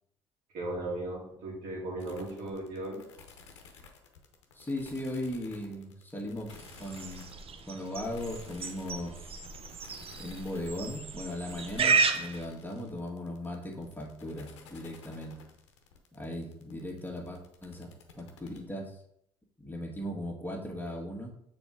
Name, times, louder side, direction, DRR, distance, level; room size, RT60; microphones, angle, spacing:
voice 1, 0.5-3.0, right 1 dB, 70° right, -4 dB, 2.6 m, -36 dB
sound 1, 2.0-18.6, left 5 dB, 90° left, 0.9 m, -53 dB
voice 2, 4.5-6.5 6.8-7.3 7.6-9.3 10.2-15.3 16.1-19.0 19.6-21.3, left 1 dB, 15° left, 0 dB, 1.7 m, -38 dB
sound 2, 6.5-12.4, right 5 dB, 40° right, 0.7 m, -32 dB
6.8 x 4.3 x 3.8 m, 0.72 s
hypercardioid pair, 55°, 15 cm